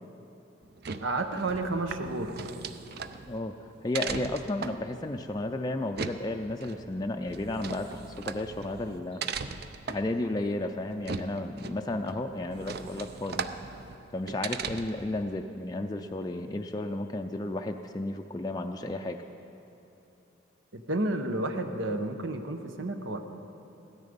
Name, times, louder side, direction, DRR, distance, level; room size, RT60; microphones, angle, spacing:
sound 1, 0.6-15.1, right 5 dB, 55° right, 0.5 m, -39 dB
voice 1, 1.0-2.3 20.7-23.2, right 2 dB, 80° right, 6 dB, 1.0 m, -31 dB
voice 2, 3.3-9.2 9.9-13.5 14.1-19.2, left 2 dB, 20° left, 3 dB, 0.4 m, -33 dB
16.5 x 13.0 x 5.2 m, 2.9 s
head